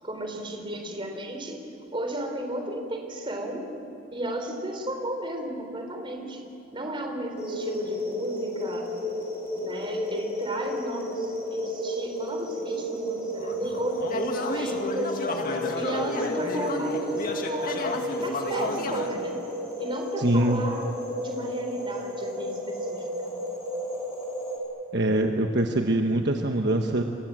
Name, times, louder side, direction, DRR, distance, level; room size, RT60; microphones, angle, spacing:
voice 1, 0.0-1.6 1.9-3.7 4.1-6.5 6.7-8.9 9.6-15.2 15.7-17.9 18.2-19.4 19.8-23.3, right 1 dB, 25° right, 4 dB, 3.7 m, -34 dB
sound 1, 7.4-24.6, equal, 15° left, 5.8 m, -32 dB
sound 2, 13.4-19.1, left 2 dB, 45° left, 2.2 m, -32 dB
voice 2, 20.2-20.6 24.9-27.0, right 1 dB, 55° right, 3 dB, 1.3 m, -23 dB
29.0 x 23.5 x 7.6 m, 2.8 s
head